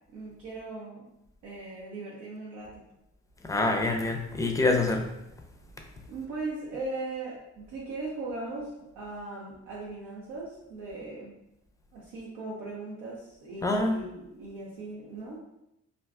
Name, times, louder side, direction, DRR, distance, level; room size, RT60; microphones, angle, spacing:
voice 1, 0.1-1.1 1.4-2.8 6.1-11.3 11.9-15.4, right 2 dB, 90° right, -6 dB, 0.7 m, -39 dB
voice 2, 3.4-5.2 13.6-14.0, left 2 dB, 10° left, 3 dB, 0.4 m, -26 dB
2.4 x 2.2 x 3.5 m, 0.84 s
cardioid pair, 90°, 30 cm